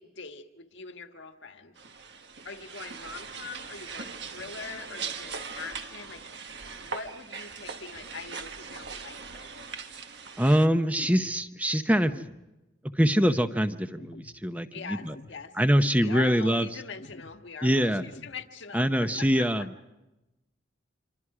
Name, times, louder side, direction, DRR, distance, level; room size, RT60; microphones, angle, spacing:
voice 1, 0.0-1.7 2.4-6.2 6.8-9.5 14.7-15.5 16.0-19.7, left 5 dB, 75° left, 6 dB, 1.6 m, -42 dB
sound 1, 1.8-10.7, right 5 dB, 65° right, 1.4 m, -40 dB
voice 2, 10.4-12.1 13.0-15.1 15.6-16.7 17.6-18.0 18.7-19.7, equal, 10° right, 9 dB, 0.8 m, -24 dB
sound 2, 11.0-11.4 12.0-12.4 13.0-13.4 14.0-14.4 15.0-15.4 16.0-16.4 17.0-17.4 18.0-18.4 19.0-19.4, left 2 dB, 55° left, 0.9 m, -48 dB
27.0 x 25.0 x 4.9 m, 0.98 s
head